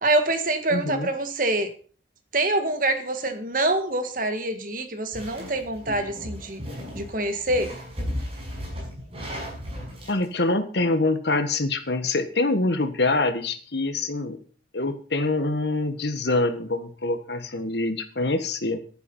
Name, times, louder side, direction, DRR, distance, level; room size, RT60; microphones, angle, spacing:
voice 1, 0.0-1.7 2.3-6.6 6.9-7.7, right 2 dB, 45° right, 8 dB, 1.8 m, -25 dB
voice 2, 0.7-1.1 10.1-14.4 14.7-18.8, left 2 dB, 70° left, 9 dB, 1.6 m, -25 dB
sound 1, 5.1-10.2, equal, 30° right, 5.9 m, -35 dB
11.0 x 11.0 x 5.5 m, 0.41 s
head